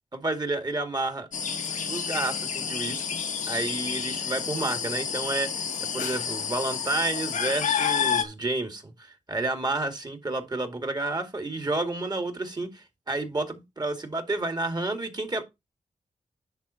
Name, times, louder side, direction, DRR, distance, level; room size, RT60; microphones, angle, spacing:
voice 1, 0.1-1.3 1.9-3.2 3.5-5.6 5.9-15.4, right 2 dB, 35° right, 2.2 m, -30 dB
sound 1, 1.3-8.2, left 7 dB, 90° left, 1.2 m, -29 dB
10.5 x 4.1 x 5.7 m
cardioid pair, 70°, 13 cm